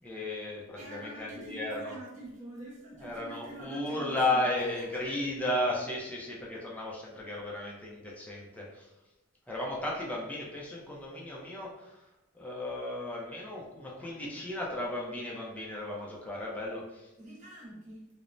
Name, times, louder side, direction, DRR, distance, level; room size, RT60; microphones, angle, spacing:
voice 1, 0.0-2.0 3.0-8.9 9.5-12.0 12.3-17.1, left 1 dB, 10° left, -4 dB, 0.4 m, -34 dB
voice 2, 0.8-5.3 17.2-18.1, right 1 dB, 35° right, -6 dB, 0.9 m, -45 dB
3.1 x 2.0 x 2.5 m, 1.0 s
head